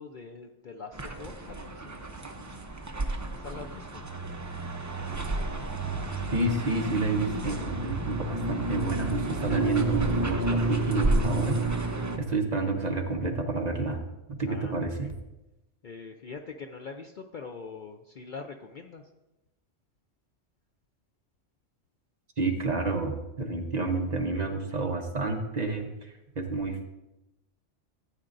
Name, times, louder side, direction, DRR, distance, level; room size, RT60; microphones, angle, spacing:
voice 1, 0.0-2.1 3.3-4.0 14.4-15.1 15.8-19.1, left 5 dB, 55° left, 4 dB, 0.6 m, -43 dB
sound 1, 0.9-12.2, right 2 dB, 20° right, 0.5 m, -30 dB
voice 2, 6.3-11.7 12.2-14.0 14.4-15.1 22.4-26.8, right 3 dB, 40° right, 3 dB, 0.9 m, -29 dB
14.5 x 8.4 x 2.6 m, 0.97 s
omnidirectional pair, 1.2 m